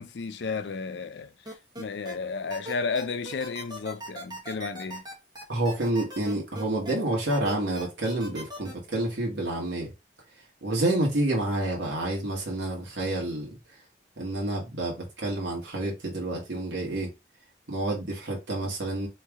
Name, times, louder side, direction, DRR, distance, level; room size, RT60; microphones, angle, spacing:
voice 1, 0.0-5.0, left 4 dB, 80° left, 0.5 m, -33 dB
sound 1, 1.4-2.1 2.5-6.9 7.3-8.7, right 1 dB, 25° right, 1.2 m, -39 dB
voice 2, 5.5-9.9 10.6-13.5 14.2-17.1 17.7-19.1, right 1 dB, 85° right, 1.6 m, -28 dB
3.3 x 3.1 x 3.6 m
head